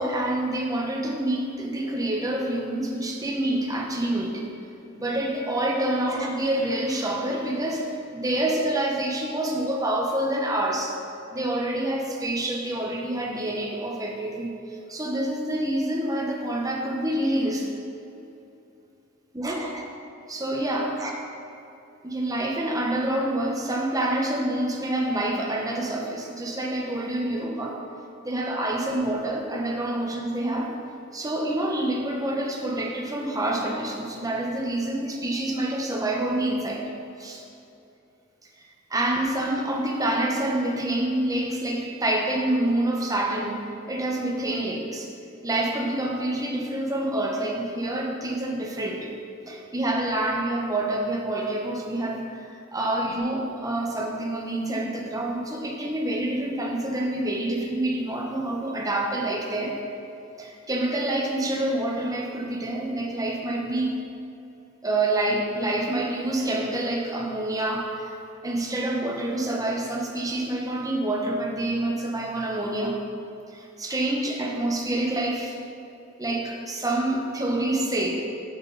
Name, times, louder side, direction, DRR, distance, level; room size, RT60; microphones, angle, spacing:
voice 1, 0.0-4.4 4.9-10.9 11.3-17.8 19.3-19.9 20.3-21.2 22.0-27.8 28.2-30.7 31.1-36.8 37.2-37.4 38.9-43.6 43.9-45.1 45.4-49.1 49.5-59.8 60.4-63.9 64.8-73.0 73.5-75.6 76.2-78.2, right 1 dB, 20° right, 0 dB, 1.3 m, -27 dB
11.0 x 7.9 x 4.2 m, 2.7 s
head